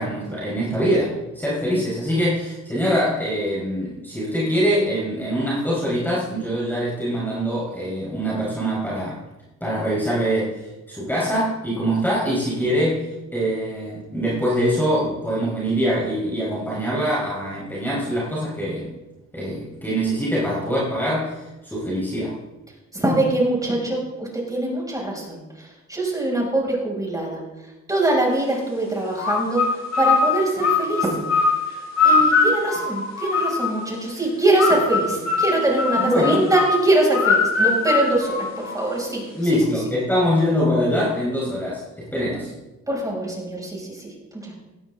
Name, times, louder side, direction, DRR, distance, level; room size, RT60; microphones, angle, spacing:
voice 1, 0.0-9.2 9.6-18.9 19.3-22.4 35.9-36.4 39.3-42.5, equal, 5° left, -6 dB, 4.5 m, -23 dB
voice 2, 22.9-27.4 27.9-31.2 32.0-39.3 39.5-39.6 42.9-44.5, right 2 dB, 10° right, -2 dB, 6.3 m, -23 dB
sound 1, 29.2-33.9 34.6-39.0, left 4 dB, 60° left, 6.2 m, -22 dB
17.5 x 13.0 x 3.7 m, 1.1 s
cardioid pair, 90°, 30 cm